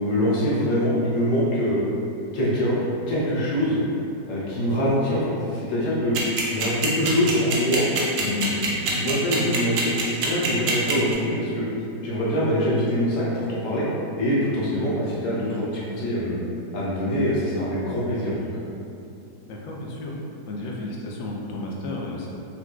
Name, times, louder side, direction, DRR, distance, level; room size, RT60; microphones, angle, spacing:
voice 1, 0.0-1.8 2.3-3.8 4.3-6.2 6.5-11.6 12.0-13.9 14.2-16.4 16.7-18.4, equal, 55° left, -8 dB, 1.0 m, -24 dB
sound 1, 6.1-11.1, right 5 dB, 70° right, 0.9 m, -24 dB
voice 2, 19.5-20.1 20.5-22.3, left 2 dB, 85° left, -2 dB, 1.3 m, -33 dB
4.1 x 2.4 x 2.3 m, 2.6 s
omnidirectional pair, 2.0 m